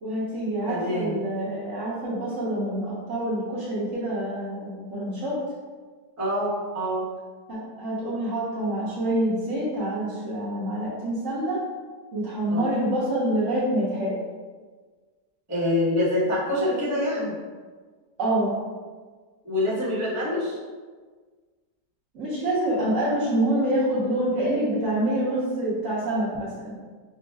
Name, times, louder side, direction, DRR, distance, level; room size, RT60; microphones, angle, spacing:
voice 1, 0.0-5.4 7.5-11.6 12.1-14.2 18.2-18.6 22.1-26.8, right 1 dB, 50° right, -9 dB, 1.3 m, -26 dB
voice 2, 0.7-1.2 6.2-7.0 12.5-12.7 15.5-17.3 19.4-20.6, left 1 dB, 10° right, -9 dB, 0.9 m, -25 dB
6.0 x 2.2 x 2.3 m, 1.5 s
omnidirectional pair, 1.9 m